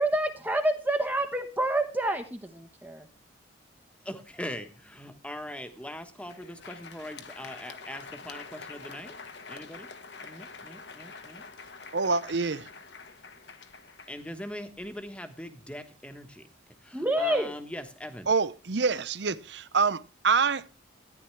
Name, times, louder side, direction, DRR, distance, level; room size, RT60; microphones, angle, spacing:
voice 1, 0.0-3.1 16.9-17.5, right 1 dB, 10° right, 1.0 m, -28 dB
voice 2, 4.0-9.2 9.5-9.9 10.2-11.4 14.1-16.4 16.8-18.3, left 1 dB, 5° left, 1.3 m, -41 dB
Crowd, 6.1-15.0, left 4 dB, 60° left, 1.3 m, -46 dB
voice 3, 11.9-12.7 18.3-20.7, right 4 dB, 60° right, 0.7 m, -26 dB
14.0 x 10.5 x 3.2 m
head